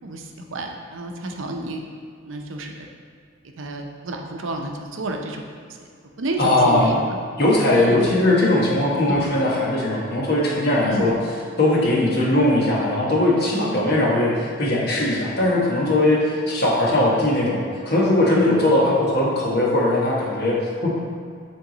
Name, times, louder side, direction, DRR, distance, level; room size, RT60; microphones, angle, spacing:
voice 1, 0.0-1.8 2.3-2.9 3.4-5.4 5.7-5.8 6.2-7.2 7.7-8.2 9.1-9.3 10.8-11.2 13.9-14.1, right 1 dB, 75° right, 3 dB, 0.6 m, -31 dB
voice 2, 6.4-7.0 7.4-11.1 11.6-20.6 20.8-21.0, left 1 dB, 50° left, -4 dB, 1.3 m, -19 dB
7.7 x 3.7 x 3.9 m, 2.2 s
head